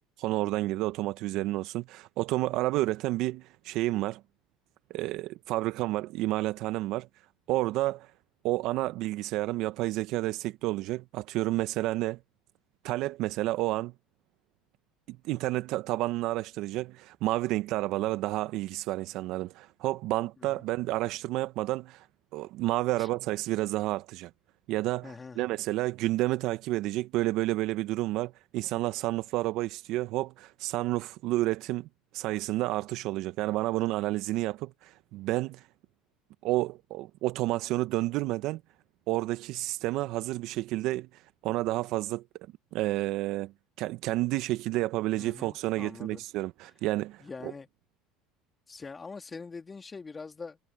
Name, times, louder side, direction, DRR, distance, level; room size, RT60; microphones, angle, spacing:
voice 1, 0.2-4.2 4.9-7.1 7.5-8.1 8.4-12.2 12.8-13.9 15.1-22.1 22.3-24.3 24.7-31.9 32.1-35.7 36.4-38.6 39.1-42.2 42.7-43.5 43.8-47.5, right 17 dB, 65° right, 0.8 m, -30 dB
voice 2, 25.0-25.5 45.2-46.2 46.6-46.7 47.2-47.7 48.7-50.6, left 4 dB, 25° left, 2.2 m, -43 dB
supercardioid pair, 85°, 0 cm